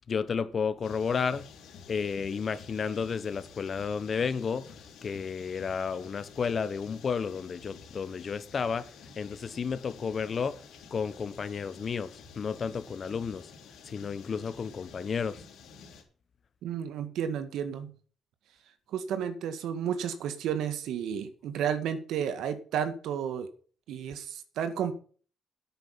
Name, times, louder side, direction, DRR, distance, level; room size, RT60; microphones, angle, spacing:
voice 1, 0.1-1.5 1.9-4.6 5.0-8.9 9.2-10.6 10.9-13.5 13.9-15.4, left 6 dB, 45° left, 1.1 m, -32 dB
sound 1, 0.8-16.0, left 5 dB, 80° left, 4.0 m, -51 dB
voice 2, 16.6-17.9 18.9-23.5 23.9-24.9, right 8 dB, 80° right, 1.9 m, -32 dB
10.5 x 8.9 x 5.8 m
cardioid pair, 90°, 0 cm